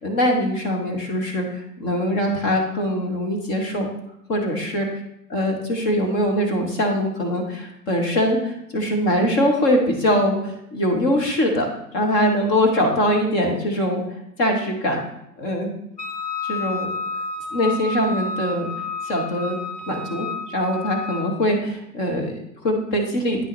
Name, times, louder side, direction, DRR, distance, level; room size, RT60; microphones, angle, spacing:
voice 1, 0.0-3.9 4.3-4.9 5.3-11.7 11.9-14.0 14.4-15.0 15.4-15.7 16.4-16.9 17.5-18.7 19.1-19.6 19.9-23.4, equal, 15° left, 1 dB, 0.6 m, -22 dB
Wind instrument woodwind instrument, 16.0-21.3, left 3 dB, 85° left, 1.1 m, -30 dB
8.7 x 5.5 x 3.0 m, 0.77 s
figure-of-eight pair, 120°, 47 cm